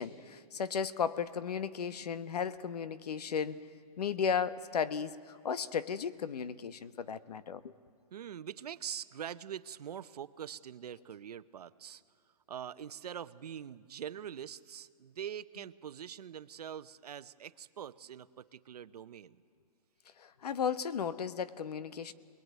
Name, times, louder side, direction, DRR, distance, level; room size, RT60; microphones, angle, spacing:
voice 1, 0.0-3.7 4.0-7.7 20.2-22.1, left 7 dB, 85° left, 14 dB, 1.2 m, -35 dB
voice 2, 8.1-12.0 12.5-19.4, right 9 dB, 85° right, 14 dB, 0.9 m, -44 dB
26.0 x 20.5 x 9.4 m, 2.2 s
hypercardioid pair, 175°, 20 cm